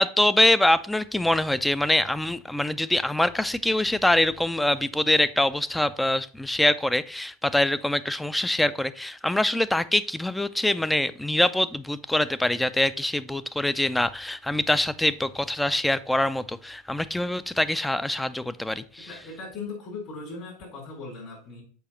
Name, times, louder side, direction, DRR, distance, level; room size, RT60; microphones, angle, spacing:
voice 1, 0.0-19.1, left 1 dB, 5° left, 0.5 m, -24 dB
voice 2, 19.1-21.6, left 4 dB, 50° left, 4.2 m, -38 dB
6.9 x 4.9 x 4.3 m
hypercardioid pair, 85°, 0 cm